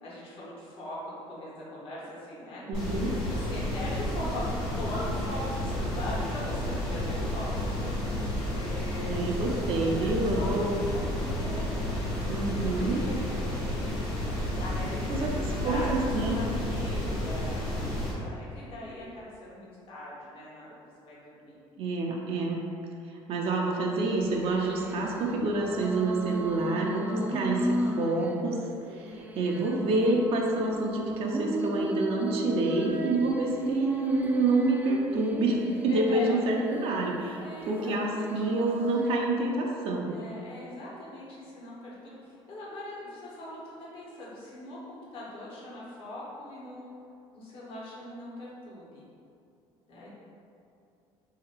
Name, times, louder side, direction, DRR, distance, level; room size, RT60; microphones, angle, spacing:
voice 1, 0.0-2.6 3.2-8.2 8.5-9.2 9.4-12.1 12.5-14.1 14.5-17.9 18.2-20.7 21.0-21.6 35.9-36.4 37.4-38.4 40.1-46.9 47.3-49.0 49.9-50.1, left 1 dB, 55° left, -7 dB, 1.3 m, -41 dB
sound 1, 2.7-18.1, left 1 dB, 85° left, 1.1 m, -31 dB
voice 2, 2.7-3.1 9.1-10.8 12.3-13.0 15.1-16.4 21.8-22.6 23.3-28.6 28.9-40.2, right 2 dB, 60° right, -1 dB, 0.6 m, -28 dB
sound 2, 8.9-17.0, equal, 30° left, 0.8 m, -53 dB
sound 3, 24.2-39.2, right 1 dB, 15° right, 0.3 m, -35 dB
2.8 x 2.8 x 4.4 m, 2.5 s
supercardioid pair, 85°, 11 cm